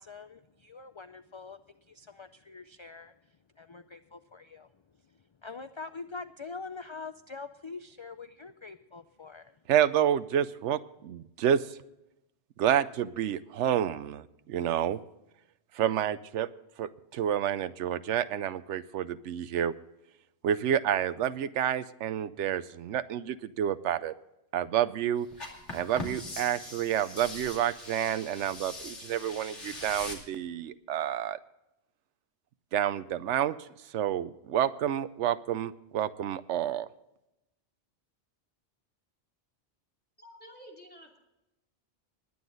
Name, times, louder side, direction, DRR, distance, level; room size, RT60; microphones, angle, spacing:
voice 1, 0.0-1.6 1.9-3.1 3.6-4.7 5.1-9.6, left 4 dB, 50° left, 11 dB, 0.3 m, -44 dB
voice 2, 9.7-11.8 12.6-15.0 15.7-16.5 16.8-19.7 20.4-24.1 24.5-25.3 25.7-31.4 32.7-33.7 33.9-36.9, right 10 dB, 90° right, 14 dB, 0.9 m, -29 dB
sound 1, 25.3-30.2, left 2 dB, 85° left, 2.8 m, -42 dB
voice 3, 40.2-41.2, equal, 10° left, 0 dB, 2.7 m, -50 dB
20.0 x 9.5 x 3.9 m, 0.90 s
omnidirectional pair, 1.2 m